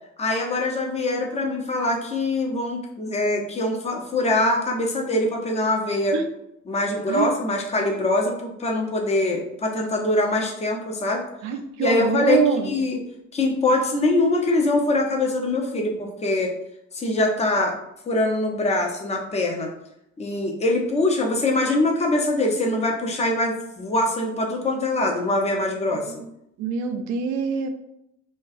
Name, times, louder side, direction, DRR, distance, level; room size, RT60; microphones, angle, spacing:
voice 1, 0.2-6.2 6.7-11.2 11.8-13.0 13.3-16.5 16.9-17.8 18.1-19.7 20.2-26.1, left 2 dB, 15° left, 1 dB, 0.5 m, -23 dB
voice 2, 11.4-12.7 26.6-27.7, right 6 dB, 45° right, 6 dB, 0.4 m, -24 dB
2.3 x 2.3 x 2.5 m, 0.79 s
figure-of-eight pair, 55°, 40 cm